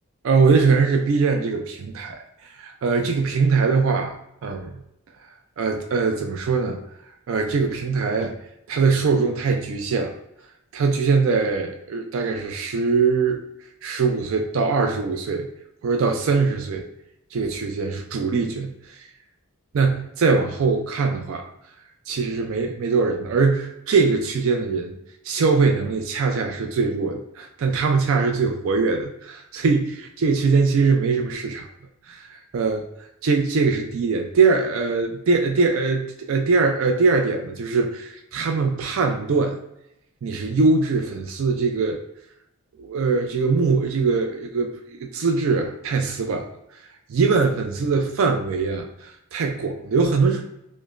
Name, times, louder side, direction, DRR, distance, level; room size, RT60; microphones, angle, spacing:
voice 1, 0.2-4.2 4.4-4.8 5.6-6.8 7.3-8.3 8.7-10.1 10.7-13.4 13.8-15.5 15.8-16.9 17.3-18.7 19.7-21.5 22.1-24.9 25.2-31.7 32.1-32.3 32.5-32.8 33.2-39.6 40.2-42.0 42.8-46.4 47.1-50.4, right 4 dB, 65° right, 4 dB, 0.4 m, -22 dB
4.9 x 2.1 x 2.4 m, 0.81 s
head